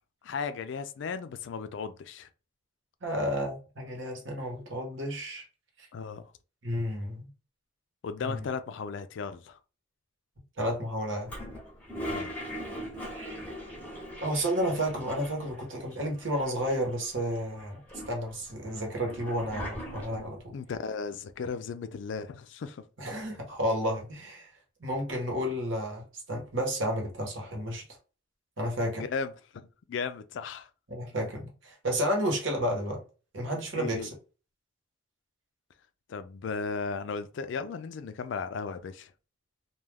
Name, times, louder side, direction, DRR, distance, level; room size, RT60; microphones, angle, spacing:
voice 1, 0.2-2.3 5.9-6.2 8.0-9.6 12.1-12.3 20.5-22.8 29.0-30.7 33.8-34.1 36.1-39.1, left 5 dB, 70° left, 0.3 m, -36 dB
voice 2, 3.0-5.4 5.8-5.9 6.6-7.3 8.2-8.5 10.6-11.3 13.1-13.4 14.2-17.8 18.1-20.5 23.0-24.5 24.8-27.8 28.6-29.0 30.9-33.0 33.3-34.1, equal, 75° right, 1.0 m, -31 dB
Toilet flush, 11.3-15.6 15.9-16.0 16.2-17.0 17.6-20.4, equal, 10° left, 0.6 m, -40 dB
2.3 x 2.3 x 3.3 m
head